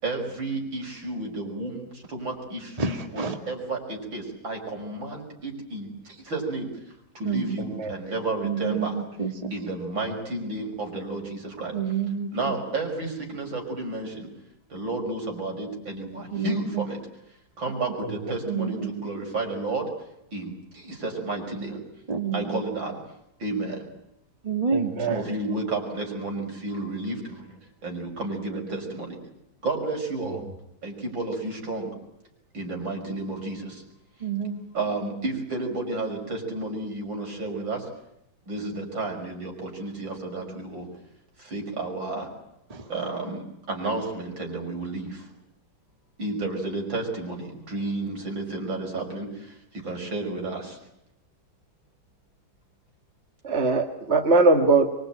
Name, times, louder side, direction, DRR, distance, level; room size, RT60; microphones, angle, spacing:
voice 1, 0.0-6.7 7.1-9.0 9.5-11.8 12.3-14.3 14.7-17.0 17.6-19.9 20.3-21.8 22.3-23.0 23.4-23.9 25.1-27.2 27.8-29.1 29.6-30.4 30.8-31.9 32.5-33.8 34.7-37.8 38.5-40.9 41.4-42.3 42.9-45.3 46.2-50.8, right 2 dB, 75° right, 2 dB, 6.6 m, -31 dB
voice 2, 2.8-3.3 7.2-7.5 8.4-9.5 11.7-12.5 16.3-16.8 18.5-19.1 22.1-22.6 24.4-24.9 34.2-34.6 42.7-42.9, right 6 dB, 20° right, 5 dB, 2.2 m, -28 dB
voice 3, 24.7-25.2 53.4-54.9, right 3 dB, 35° right, 5 dB, 2.0 m, -21 dB
24.5 x 23.5 x 9.1 m, 0.80 s
omnidirectional pair, 2.1 m